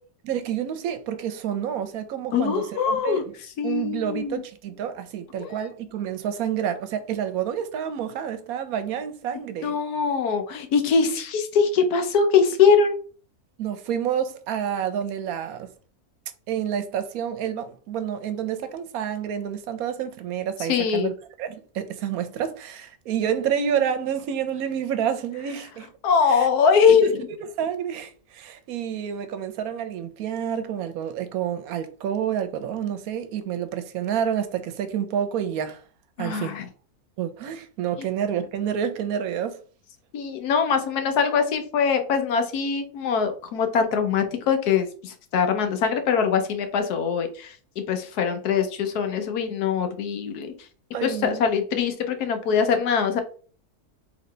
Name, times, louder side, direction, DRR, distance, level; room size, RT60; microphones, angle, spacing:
voice 1, 0.2-3.3 3.6-9.8 13.6-15.7 16.5-21.1 21.4-25.9 26.3-26.5 27.0-27.1 27.4-35.8 36.2-36.6 37.2-39.6 50.9-51.4, right 9 dB, 75° right, 1.0 m, -29 dB
voice 2, 2.3-3.2 3.6-4.4 5.4-5.7 9.6-13.0 20.6-21.1 26.0-27.2 36.2-36.7 40.1-47.5 47.9-50.5 51.0-53.2, left 6 dB, 85° left, 1.3 m, -22 dB
4.0 x 3.1 x 3.2 m
omnidirectional pair, 1.6 m